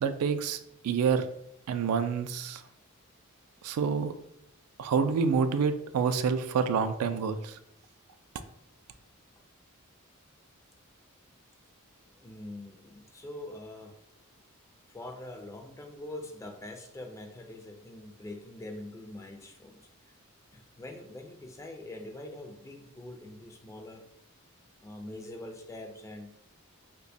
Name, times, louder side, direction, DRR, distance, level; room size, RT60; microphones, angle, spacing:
voice 1, 0.0-1.3 1.7-2.6 3.6-4.1 4.8-7.6, right 6 dB, 85° right, 10 dB, 0.3 m, -28 dB
voice 2, 12.1-14.0 14.9-19.9 20.5-24.1 24.8-26.4, left 1 dB, 15° left, 4 dB, 0.3 m, -44 dB
2.8 x 2.2 x 4.0 m, 0.75 s
head